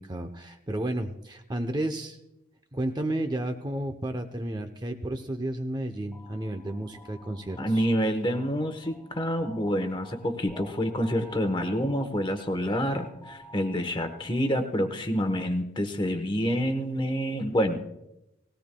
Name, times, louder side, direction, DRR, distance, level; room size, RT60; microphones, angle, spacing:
voice 1, 0.0-2.2 2.7-7.8, right 1 dB, 20° right, 6 dB, 0.6 m, -32 dB
sound 1, 6.1-14.8, equal, ahead, 2.1 m, -50 dB
voice 2, 7.6-17.9, equal, 25° left, 7 dB, 1.0 m, -27 dB
19.0 x 17.0 x 2.2 m, 0.89 s
head